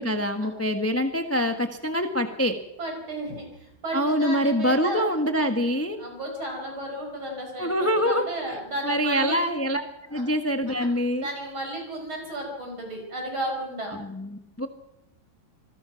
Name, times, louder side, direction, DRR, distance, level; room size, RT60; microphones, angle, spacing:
voice 1, 0.0-2.5 3.9-6.0 7.6-9.8 10.1-11.3 13.9-14.7, equal, 10° left, 6 dB, 1.2 m, -25 dB
voice 2, 2.8-5.1 6.0-9.5 10.1-10.2 10.7-10.9 11.1-13.9, right 1 dB, 90° right, 2 dB, 6.3 m, -33 dB
26.5 x 20.0 x 5.9 m, 0.87 s
omnidirectional pair, 2.2 m